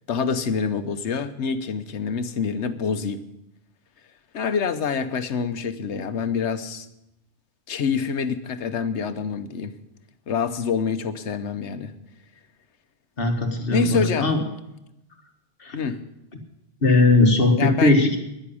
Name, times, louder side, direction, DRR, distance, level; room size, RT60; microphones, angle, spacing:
voice 1, 0.1-3.2 4.3-6.9 7.7-9.7 10.3-11.9 13.7-14.3 15.7-16.0 17.6-18.0, left 6 dB, 90° left, 11 dB, 1.2 m, -26 dB
voice 2, 13.2-14.4 15.6-15.8 16.8-18.2, left 2 dB, 55° left, 5 dB, 1.8 m, -19 dB
11.0 x 10.5 x 8.5 m, 0.89 s
omnidirectional pair, 1.1 m